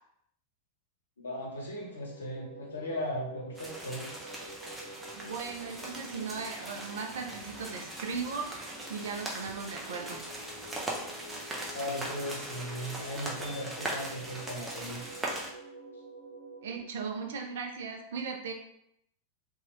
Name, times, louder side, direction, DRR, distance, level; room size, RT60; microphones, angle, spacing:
voice 1, 1.2-4.0 11.7-15.0, left 1 dB, 70° left, -2 dB, 0.8 m, -37 dB
sound 1, 1.8-16.8, right 1 dB, 35° left, 1.3 m, -49 dB
sound 2, 3.5-15.5, right 1 dB, 10° right, 0.6 m, -40 dB
voice 2, 5.1-10.3 16.6-18.5, right 5 dB, 60° right, 3 dB, 0.4 m, -38 dB
2.8 x 2.3 x 2.9 m, 0.76 s
figure-of-eight pair, 90°, 0 cm